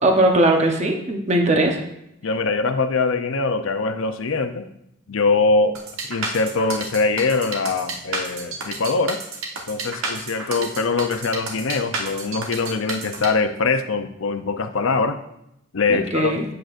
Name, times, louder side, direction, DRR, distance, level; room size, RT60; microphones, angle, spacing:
voice 1, 0.0-1.8 15.9-16.4, right 1 dB, 30° right, 2 dB, 1.0 m, -19 dB
voice 2, 2.2-4.6 5.1-5.8 6.1-9.2 9.7-15.2 15.7-16.4, left 3 dB, 75° left, 9 dB, 0.6 m, -22 dB
sound 1, 5.7-13.3, right 3 dB, 80° right, 1.3 m, -30 dB
8.7 x 7.7 x 2.6 m, 0.80 s
head